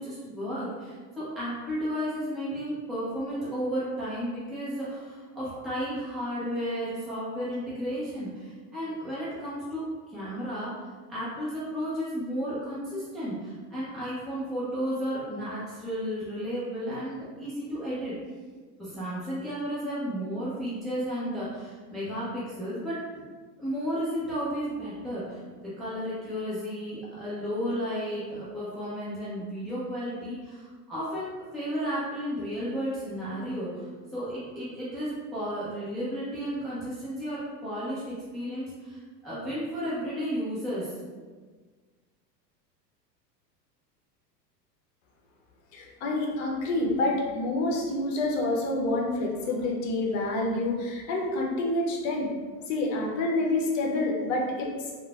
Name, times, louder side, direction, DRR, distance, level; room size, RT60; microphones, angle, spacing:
voice 1, 0.0-9.8 10.1-10.7 11.1-18.1 18.8-23.2 23.6-25.4 25.8-33.9 34.1-40.9, equal, ahead, -10 dB, 0.5 m, -33 dB
voice 2, 45.7-52.3 52.7-55.0, left 2 dB, 50° left, -1 dB, 0.7 m, -28 dB
3.1 x 2.1 x 2.3 m, 1.5 s
hypercardioid pair, 85°, 50 cm